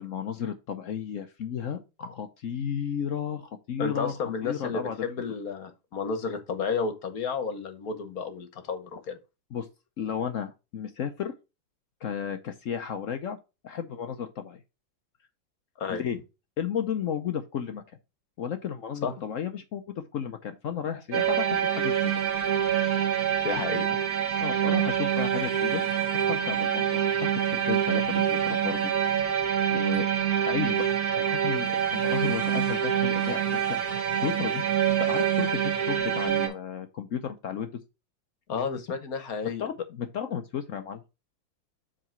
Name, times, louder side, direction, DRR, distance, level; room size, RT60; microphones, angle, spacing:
voice 1, 0.0-4.1 4.4-5.0 9.5-9.7 10.0-11.3 12.0-13.4 13.6-14.6 15.9-16.2 16.6-17.8 18.4-22.1 24.4-25.8 26.1-28.9 29.7-30.1 30.4-30.9 31.2-34.7 35.0-37.8 39.4-41.0, left 8 dB, 70° left, 0.7 m, -33 dB
voice 2, 3.8-9.2 15.8-16.0 19.0-19.1 23.4-24.0 38.5-39.6, left 5 dB, 55° left, 1.4 m, -32 dB
sound 1, 21.1-36.5, right 9 dB, 50° right, 2.1 m, -26 dB
7.6 x 3.9 x 4.4 m
omnidirectional pair, 2.1 m